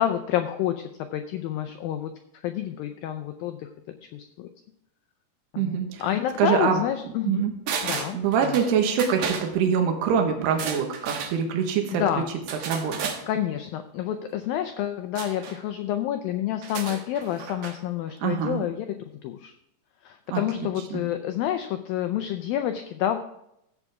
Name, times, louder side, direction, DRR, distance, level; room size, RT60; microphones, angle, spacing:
voice 1, 0.0-2.1 2.4-3.7 4.1-4.5 5.5-7.5 7.8-8.5 11.9-12.3 13.3-18.9 19.2-19.5 20.0-23.2, left 11 dB, 90° left, 8 dB, 2.0 m, -28 dB
voice 2, 5.6-6.0 6.4-6.8 7.3-7.5 8.1-12.2 12.7-13.1 18.2-18.6 20.3-21.0, right 7 dB, 80° right, 3 dB, 3.4 m, -25 dB
sound 1, 7.7-8.7 9.0-9.5 10.5-11.3 12.5-13.2 15.1-15.6 16.6-17.8 18.1-18.2, right 6 dB, 65° right, 2.5 m, -33 dB
14.0 x 8.3 x 3.6 m, 0.78 s
omnidirectional pair, 4.9 m